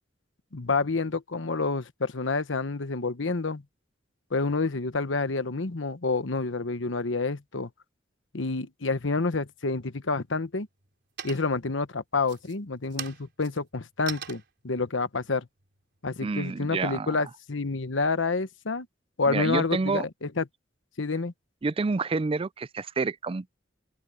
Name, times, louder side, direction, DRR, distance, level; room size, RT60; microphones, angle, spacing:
voice 1, 0.5-3.6 4.3-7.7 8.3-10.7 11.2-15.5 16.0-18.9 19.2-20.4 21.0-21.3, left 3 dB, 85° left, 1.1 m, -28 dB
sound 1, 9.5-10.1 10.5-10.9 11.2-11.7 12.2-16.6, right 8 dB, 60° right, 4.3 m, -42 dB
voice 2, 16.2-17.2 19.3-20.1 21.6-23.6, right 4 dB, 30° right, 0.4 m, -29 dB
open air
head